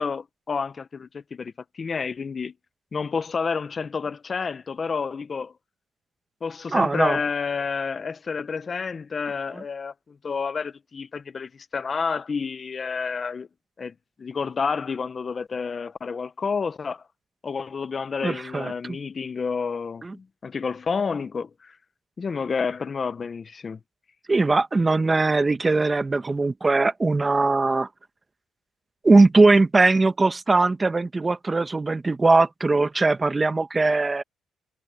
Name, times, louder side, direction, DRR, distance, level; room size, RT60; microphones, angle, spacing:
voice 1, 0.0-2.5 2.9-5.5 6.4-13.5 13.8-17.0 17.4-21.8 22.2-23.8, left 5 dB, 40° left, 1.0 m, -30 dB
voice 2, 6.7-7.2 18.2-19.0 20.0-20.1 24.3-27.9 29.0-34.2, right 3 dB, 25° right, 1.4 m, -20 dB
cardioid pair, 90°, 0 cm